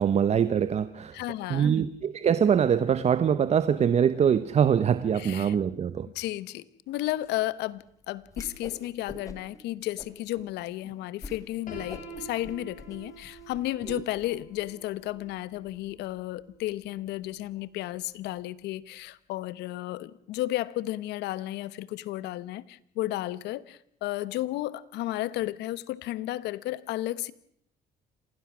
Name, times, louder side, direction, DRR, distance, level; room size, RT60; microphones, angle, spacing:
voice 1, 0.0-1.2 1.5-6.1 13.9-14.0, right 8 dB, 40° right, 0.8 m, -23 dB
voice 2, 1.1-1.8 5.1-5.5 6.1-27.3, left 15 dB, 85° left, 1.0 m, -33 dB
Whoosh swoosh swish, 8.3-8.8 9.1-9.6 10.0-10.5 10.8-10.9 11.2-11.4 11.7-14.0, left 2 dB, 20° left, 2.9 m, -43 dB
Piano, 11.7-17.5, right 2 dB, 50° left, 4.9 m, -48 dB
27.0 x 17.5 x 6.1 m
cardioid pair, 110°, 17 cm